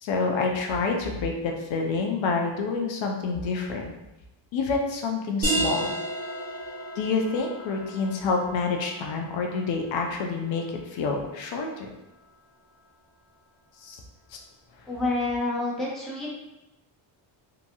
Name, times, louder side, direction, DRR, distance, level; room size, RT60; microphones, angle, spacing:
voice 1, 0.0-3.9 4.5-5.9 7.0-10.7 10.9-11.9 13.8-14.0, left 4 dB, 70° left, 2 dB, 0.6 m, -28 dB
sound 1, 5.4-10.8, right 1 dB, 20° right, 1.1 m, -33 dB
voice 2, 14.9-16.3, left 2 dB, ahead, -6 dB, 0.6 m, -28 dB
2.8 x 2.3 x 2.6 m, 0.95 s
cardioid pair, 130°, 48 cm